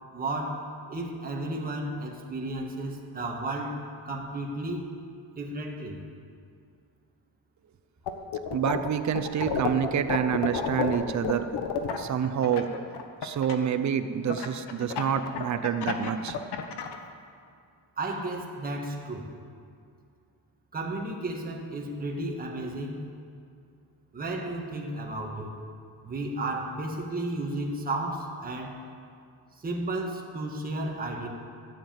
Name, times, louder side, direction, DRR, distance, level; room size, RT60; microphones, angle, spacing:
voice 1, 0.1-4.9 5.3-6.1 18.0-19.3 20.7-23.0 24.1-25.6 26.0-28.8 29.6-31.3, right 2 dB, 20° right, 0 dB, 1.6 m, -33 dB
sound 1, 8.1-8.9 9.1-13.6 14.3-17.0, left 7 dB, 80° left, 1.3 m, -30 dB
voice 2, 8.5-11.5 11.9-12.7 13.2-16.4, right 8 dB, 45° right, 9 dB, 0.8 m, -27 dB
14.5 x 7.4 x 9.0 m, 2.3 s
cardioid pair, 170°, 40 cm